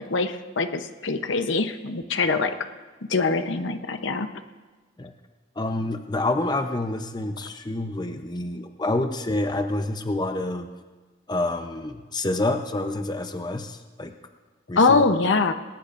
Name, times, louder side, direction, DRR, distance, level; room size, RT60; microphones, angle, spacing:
voice 1, 0.0-2.6 3.1-4.3 14.8-15.5, left 4 dB, 80° left, 8 dB, 0.9 m, -23 dB
voice 2, 5.6-10.7 11.3-14.1 14.7-15.0, left 2 dB, 20° left, 6 dB, 0.7 m, -28 dB
20.0 x 19.0 x 2.6 m, 1.3 s
head